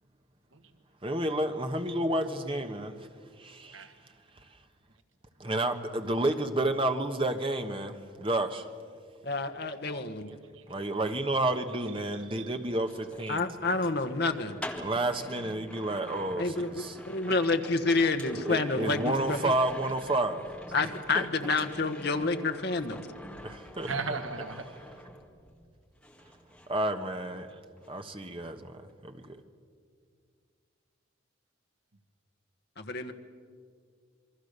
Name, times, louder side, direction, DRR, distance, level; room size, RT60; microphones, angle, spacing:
voice 1, 1.0-3.1 3.4-3.9 5.4-8.7 10.7-13.4 14.8-17.0 18.2-20.4 21.1-21.5 23.4-23.9 26.7-27.5 27.9-29.4, right 1 dB, 25° right, 1.2 m, -30 dB
voice 2, 9.2-10.3 13.3-14.6 16.4-16.7 17.1-19.4 20.7-23.0 32.8-33.1, left 3 dB, 50° left, 1.3 m, -28 dB
sound 1, 11.7-25.7 26.0-27.5 27.8-28.1, equal, 5° left, 1.7 m, -46 dB
voice 3, 12.1-12.5 23.9-24.6, right 4 dB, 75° right, 1.6 m, -36 dB
27.5 x 22.5 x 6.7 m
head